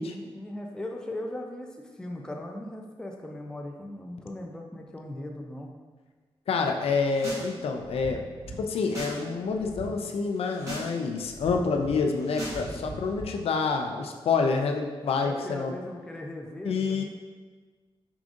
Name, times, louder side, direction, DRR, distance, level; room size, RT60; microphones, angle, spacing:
voice 1, 0.0-5.7 15.2-17.0, left 1 dB, 10° left, 1 dB, 0.3 m, -39 dB
voice 2, 6.5-8.2 8.7-15.7 16.6-17.0, left 4 dB, 80° left, 4 dB, 0.4 m, -27 dB
sound 1, 6.9-7.5 7.7-9.2 9.5-9.8 10.3-10.9 11.2-13.2, right 1 dB, 30° right, 1.2 m, -39 dB
4.8 x 3.7 x 2.5 m, 1.4 s
wide cardioid pair, 175°, 10 cm